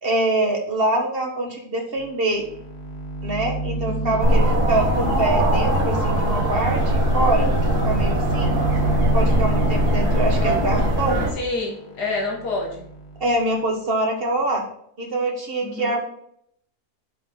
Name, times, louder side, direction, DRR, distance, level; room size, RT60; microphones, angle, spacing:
voice 1, 0.0-2.4 3.2-7.5 7.8-8.6 9.1-11.2 13.2-14.7 15.0-16.0, right 2 dB, 40° right, 1 dB, 1.4 m, -24 dB
sound 1, 2.0-2.1 2.4-13.5, right 2 dB, 45° left, 1.4 m, -29 dB
voice 2, 3.9-4.3 11.3-12.8 15.6-16.0, left 3 dB, 85° left, -2 dB, 2.3 m, -28 dB
sound 2, 4.2-11.3, right 1 dB, 75° right, 2.5 m, -21 dB
7.6 x 5.6 x 3.8 m, 0.69 s
omnidirectional pair, 1.7 m